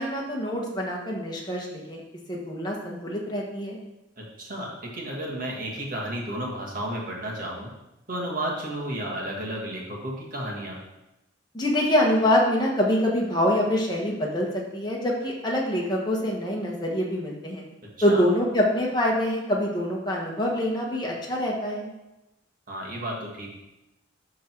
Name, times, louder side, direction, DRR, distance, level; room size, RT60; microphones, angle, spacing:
voice 1, 0.0-2.0 2.3-3.8 11.5-17.6 18.0-21.9, left 1 dB, 20° left, -2 dB, 1.4 m, -25 dB
voice 2, 4.2-7.7 8.1-10.8 18.1-18.2 22.7-23.5, right 1 dB, 45° right, -2 dB, 1.8 m, -32 dB
11.5 x 3.9 x 4.6 m, 0.96 s
head